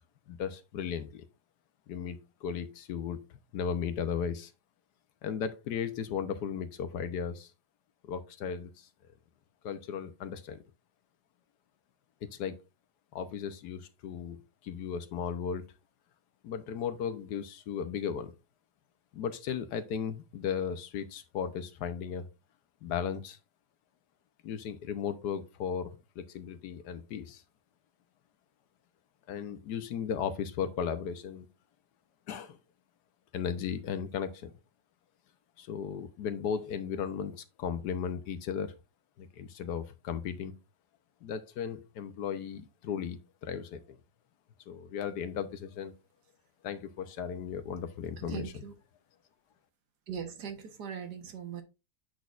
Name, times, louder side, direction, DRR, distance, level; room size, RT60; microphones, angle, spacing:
voice 1, 0.3-1.2 1.9-3.2 3.5-4.5 5.2-7.5 8.0-8.9 9.6-10.6 12.3-12.6 13.1-15.6 16.4-18.3 19.1-22.3 22.8-23.4 24.4-27.4 29.3-31.5 32.3-32.6 33.3-34.5 35.6-38.7 39.2-40.5 41.2-44.0 44.7-45.9 46.6-48.4, left 7 dB, 80° left, 1.4 m, -36 dB
voice 2, 48.2-48.7 50.1-51.6, right 7 dB, 85° right, 1.8 m, -40 dB
8.1 x 6.2 x 2.5 m
omnidirectional pair, 1.7 m